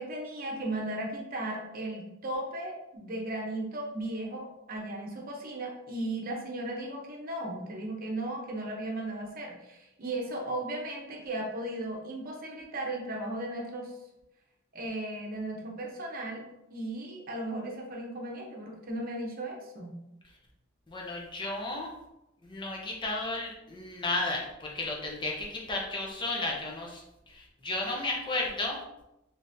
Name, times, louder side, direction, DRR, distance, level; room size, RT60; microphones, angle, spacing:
voice 1, 0.0-13.9 14.7-16.4 16.7-19.9, right 1 dB, 45° right, 0 dB, 0.8 m, -36 dB
voice 2, 20.9-21.9 22.4-27.0 27.3-28.8, left 2 dB, 25° left, -1 dB, 0.7 m, -33 dB
3.9 x 3.3 x 2.6 m, 0.91 s
head